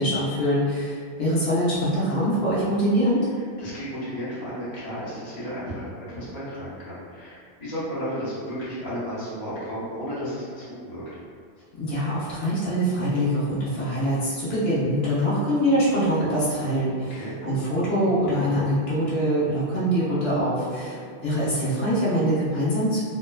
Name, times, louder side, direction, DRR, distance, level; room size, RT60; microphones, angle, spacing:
voice 1, 0.0-3.2 11.7-23.0, equal, 70° left, -10 dB, 1.0 m, -24 dB
voice 2, 3.6-11.0 17.1-17.4 20.8-21.0, equal, 45° left, -10 dB, 0.9 m, -33 dB
3.1 x 2.1 x 2.2 m, 2.1 s
omnidirectional pair, 1.1 m